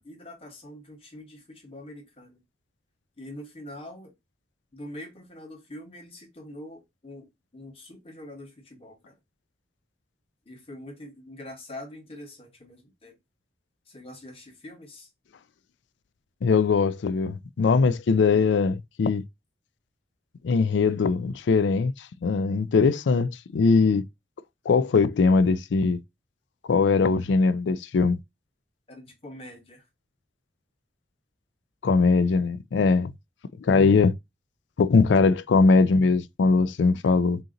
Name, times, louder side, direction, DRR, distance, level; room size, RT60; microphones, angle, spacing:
voice 1, 0.0-2.4 3.2-4.1 4.7-9.2 10.5-13.2 13.9-15.1 28.9-29.8, left 1 dB, 30° left, 1.2 m, -44 dB
voice 2, 16.4-19.2 20.4-24.0 24.7-26.0 26.7-28.2 31.8-33.1 33.6-34.1 34.8-37.4, left 4 dB, 75° left, 0.4 m, -21 dB
3.8 x 2.9 x 3.8 m
head